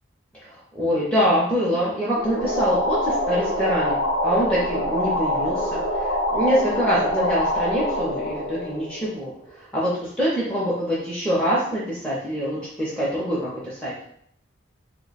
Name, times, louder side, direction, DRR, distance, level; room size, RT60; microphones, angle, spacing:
voice 1, 0.5-4.0 4.2-9.3 9.7-13.9, equal, 5° left, -8 dB, 0.5 m, -24 dB
sound 1, 2.2-9.5, left 1 dB, 80° left, 0.8 m, -25 dB
2.9 x 2.1 x 4.0 m, 0.68 s
head